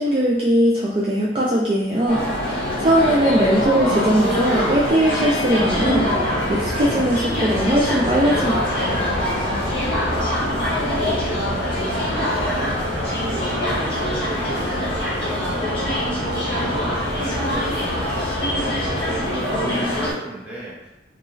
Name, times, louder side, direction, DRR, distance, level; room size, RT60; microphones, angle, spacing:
voice 1, 0.0-8.8 9.1-9.3, right 1 dB, 30° right, -6 dB, 0.3 m, -20 dB
sound 1, 2.1-20.1, left 1 dB, 30° left, 0.8 m, -24 dB
voice 2, 2.8-3.7 9.9-10.4 10.7-16.0 16.3-18.0 18.5-20.9, right 2 dB, 10° right, -8 dB, 0.8 m, -35 dB
sound 2, 5.6-19.2, left 1 dB, 60° left, 0.7 m, -31 dB
2.3 x 2.3 x 3.0 m, 0.92 s
head